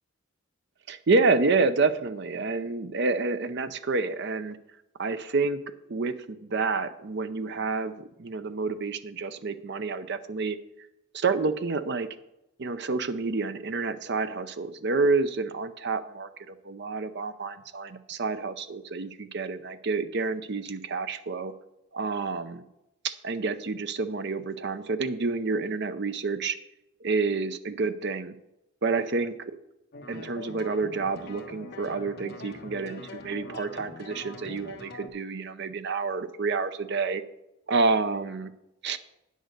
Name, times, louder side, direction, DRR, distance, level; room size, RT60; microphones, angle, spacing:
voice 1, 0.9-4.6 5.0-10.6 11.1-12.1 12.6-21.5 21.9-22.6 23.0-26.6 27.0-28.3 28.8-29.4 30.1-37.2 37.7-38.5 38.8-39.0, right 4 dB, 55° right, 11 dB, 0.6 m, -28 dB
sound 1, 29.9-35.1, left 2 dB, 50° left, 1.2 m, -43 dB
9.3 x 6.4 x 6.7 m, 0.91 s
head